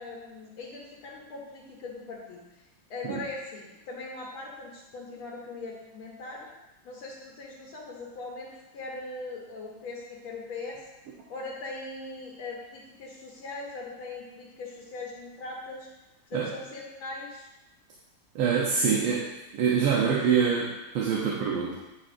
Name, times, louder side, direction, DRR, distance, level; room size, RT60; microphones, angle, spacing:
voice 1, 0.0-6.5 6.8-10.8 11.3-15.9 16.3-17.5 21.1-21.3, left 3 dB, 75° left, -3 dB, 1.7 m, -40 dB
voice 2, 18.3-19.3 19.5-21.7, right 6 dB, 80° right, -4 dB, 1.6 m, -25 dB
9.2 x 4.2 x 2.5 m, 1.0 s
omnidirectional pair, 2.4 m